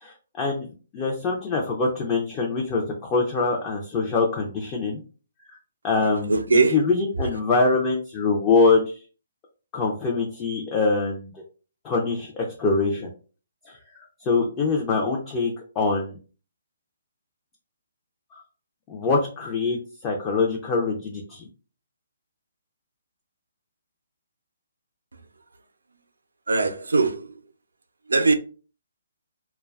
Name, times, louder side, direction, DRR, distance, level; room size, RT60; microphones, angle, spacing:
voice 1, 0.0-0.7 0.9-5.0 5.8-6.4 6.7-9.0 9.7-11.4 11.8-13.1 13.7-16.2 18.3-18.4 18.9-19.8 20.0-21.5, left 3 dB, 20° left, 0.4 m, -24 dB
voice 2, 6.3-6.9 26.5-27.4 28.1-28.3, right 3 dB, 90° right, 0.4 m, -21 dB
2.4 x 2.2 x 2.3 m
hypercardioid pair, 155°, 0 cm